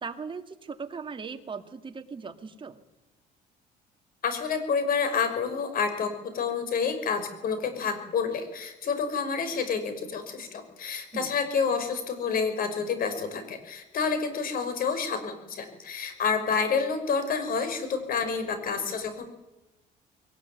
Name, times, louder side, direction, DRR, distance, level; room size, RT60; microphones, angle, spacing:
voice 1, 0.0-2.8 11.1-11.3, right 5 dB, 30° right, 7 dB, 2.2 m, -38 dB
voice 2, 4.2-19.3, left 5 dB, 60° left, 9 dB, 5.7 m, -29 dB
22.0 x 19.5 x 9.3 m, 1.0 s
cardioid pair, 110°, 17 cm